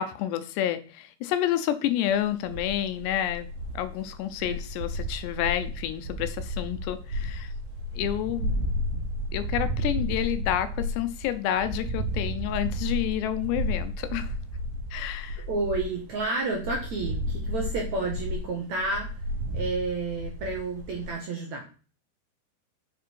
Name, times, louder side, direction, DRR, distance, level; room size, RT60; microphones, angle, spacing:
voice 1, 0.0-3.5 3.7-7.5 7.9-8.7 9.3-14.3 14.9-15.5, left 11 dB, 80° left, 10 dB, 2.8 m, -29 dB
sound 1, 2.1-16.2 16.5-21.1, equal, 80° right, 3.9 m, -32 dB
voice 2, 15.5-19.1 19.5-21.7, right 3 dB, 60° right, 0 dB, 2.0 m, -30 dB
7.7 x 7.6 x 4.6 m, 0.37 s
omnidirectional pair, 5.1 m